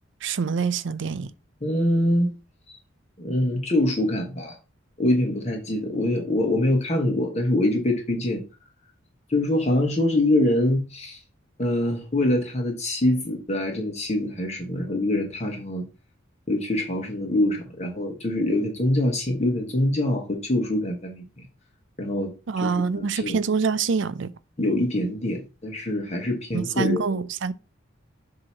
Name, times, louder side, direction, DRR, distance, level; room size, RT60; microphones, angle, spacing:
voice 1, 0.2-1.3 22.5-24.3 26.5-27.5, right 5 dB, 65° right, 0.5 m, -25 dB
voice 2, 1.6-2.3 2.7-2.8 3.2-4.6 5.0-8.4 9.3-11.2 11.6-15.8 16.5-21.5 22.0-22.3 22.6-23.4 24.6-27.2, left 1 dB, 35° left, 1.2 m, -24 dB
7.7 x 2.8 x 5.7 m
head